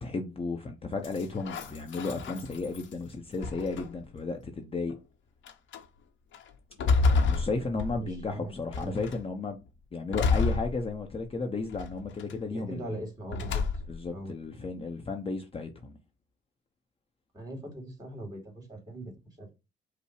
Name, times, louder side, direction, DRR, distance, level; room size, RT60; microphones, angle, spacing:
voice 1, 0.0-4.9 7.1-9.6 9.9-13.0 13.9-16.0, left 3 dB, 30° left, 0.7 m, -34 dB
sound 1, 1.0-2.9 3.4-4.1 4.9-5.0 5.5-5.8 6.3-8.3 8.7-9.2 10.1-11.3 11.7-12.3 13.3-14.1, left 4 dB, 70° left, 0.9 m, -29 dB
voice 2, 7.6-9.0 12.5-13.6 14.1-14.3 17.3-19.5, right 1 dB, 20° right, 2.6 m, -41 dB
5.4 x 2.1 x 4.7 m
cardioid pair, 90°, 20 cm